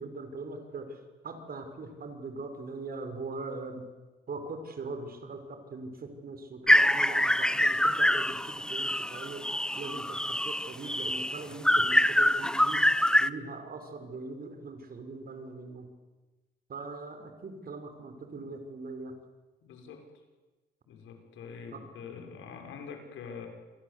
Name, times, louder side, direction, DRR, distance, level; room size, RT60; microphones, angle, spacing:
voice 1, 0.0-3.8 4.3-9.5 9.8-12.8 13.2-15.9 16.7-19.1 21.7-21.8, right 3 dB, 50° right, 7 dB, 5.6 m, -41 dB
sound 1, 6.7-13.3, left 1 dB, 5° left, 1.0 m, -25 dB
voice 2, 19.6-20.0 20.9-23.5, left 6 dB, 80° left, 4 dB, 5.8 m, -44 dB
28.0 x 23.0 x 8.3 m, 1.2 s
cardioid pair, 90°, 20 cm